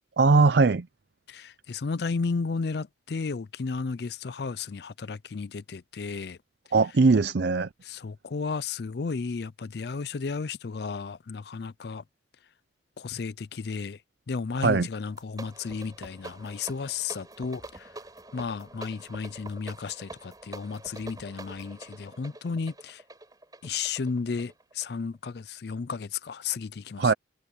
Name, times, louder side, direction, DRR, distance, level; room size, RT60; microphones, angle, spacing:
voice 1, 0.2-0.9 6.7-7.7 14.6-14.9 27.0-27.1, right 4 dB, 60° right, 0.5 m, -20 dB
voice 2, 1.3-6.4 7.9-12.0 13.0-14.0 14.3-17.9 18.3-23.0 23.6-27.1, left 5 dB, 60° left, 0.4 m, -33 dB
sound 1, 15.1-25.4, right 2 dB, 20° right, 4.3 m, -46 dB
head